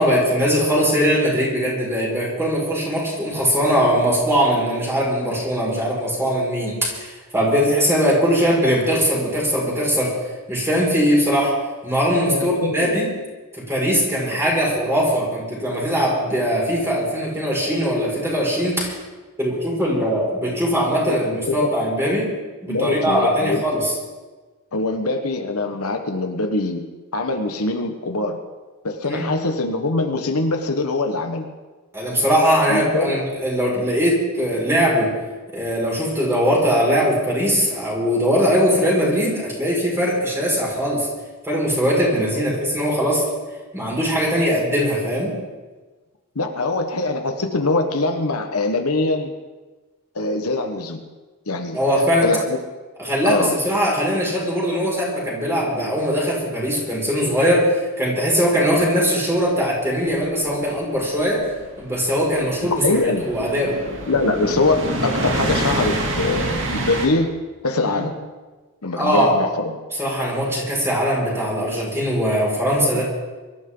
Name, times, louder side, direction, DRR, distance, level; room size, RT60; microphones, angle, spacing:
voice 1, 0.0-10.1 10.5-11.5 11.8-13.1 13.7-18.9 19.4-22.3 22.6-23.9 29.0-29.2 31.9-35.1 35.5-41.1 41.4-43.2 43.7-45.3 51.7-52.3 53.0-57.7 58.0-61.4 61.8-63.0 63.3-63.8 67.8-68.0 68.9-69.3 70.0-73.0, equal, 10° right, -4 dB, 5.8 m, -20 dB
voice 2, 12.3-13.0 21.1-21.2 21.5-21.7 22.7-23.6 24.7-26.8 27.1-28.4 28.8-31.5 32.7-33.1 42.2-42.4 46.3-49.3 50.1-51.0 51.5-52.6 53.2-53.5 62.6-63.2 64.1-67.3 67.6-68.1 68.8-69.8 72.9-73.0, left 2 dB, 80° left, 5 dB, 1.4 m, -23 dB
sound 1, 60.0-67.1, right 1 dB, 60° right, 2.6 m, -27 dB
23.5 x 13.5 x 3.9 m, 1.3 s
head